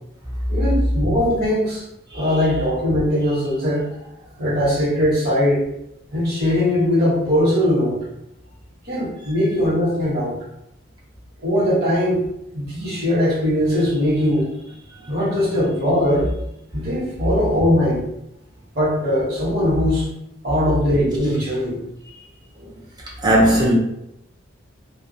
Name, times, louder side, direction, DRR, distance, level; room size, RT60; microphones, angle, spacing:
voice 1, 0.5-1.8 2.1-3.9 4.4-5.7 6.1-8.0 8.8-10.3 11.4-12.2 12.5-14.5 15.1-16.3 16.7-18.0 18.7-20.1 20.4-21.8, left 1 dB, 50° right, 1.0 m, -20 dB
voice 2, 23.2-23.7, right 1 dB, 20° right, 0.6 m, -18 dB
2.3 x 2.2 x 2.6 m
head